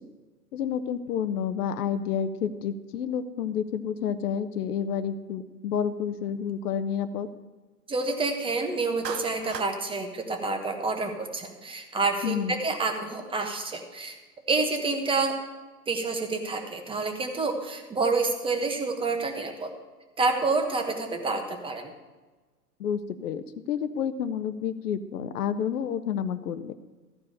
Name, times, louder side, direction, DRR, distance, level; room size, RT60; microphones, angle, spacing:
voice 1, 0.5-7.3 12.2-12.6 22.8-26.7, left 8 dB, 70° left, 10 dB, 0.8 m, -30 dB
voice 2, 7.9-14.2 14.5-15.4 15.9-19.7 20.2-21.9, right 3 dB, 10° right, 4 dB, 1.3 m, -28 dB
Clapping, 9.0-9.7, right 8 dB, 90° right, 0.8 m, -36 dB
14.0 x 4.7 x 8.6 m, 1.3 s
hypercardioid pair, 115°, 48 cm